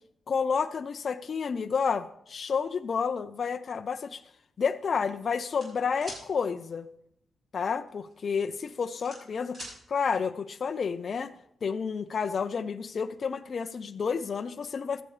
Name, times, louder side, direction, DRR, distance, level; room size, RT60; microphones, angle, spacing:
voice 1, 0.3-4.2 4.6-6.9 7.5-9.6 9.9-11.3 11.6-15.0, left 6 dB, 45° left, 8 dB, 0.5 m, -30 dB
sound 1, 5.6-6.2 7.9-8.1 8.5-9.8, equal, 35° right, 6.4 m, -42 dB
15.5 x 13.0 x 3.3 m, 0.75 s
wide cardioid pair, 155°, 0 cm